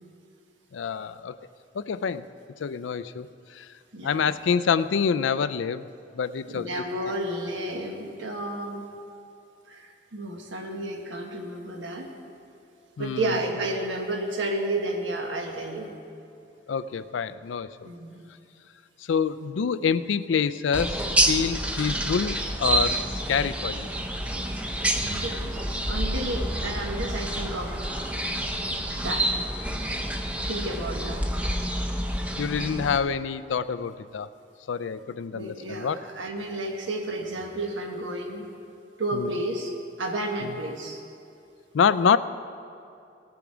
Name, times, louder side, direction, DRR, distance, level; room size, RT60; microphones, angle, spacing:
voice 1, 0.7-1.3 1.7-2.3 2.6-3.3 3.5-3.7 4.0-5.9 6.2-6.7 13.0-13.4 16.7-17.9 19.1-23.0 23.3-23.9 32.4-34.3 34.7-36.0 39.1-39.3 40.4-40.5 41.7-42.2, left 6 dB, 85° left, 15 dB, 0.4 m, -26 dB
voice 2, 6.5-8.9 9.7-12.1 13.0-15.9 17.8-18.2 25.0-27.8 29.0-29.3 30.4-31.2 35.3-38.5 39.0-39.7 40.0-41.0, right 1 dB, 90° right, 2 dB, 1.5 m, -31 dB
sound 1, 20.7-33.0, right 1 dB, 5° right, 0.6 m, -28 dB
18.5 x 7.0 x 4.9 m, 2.5 s
head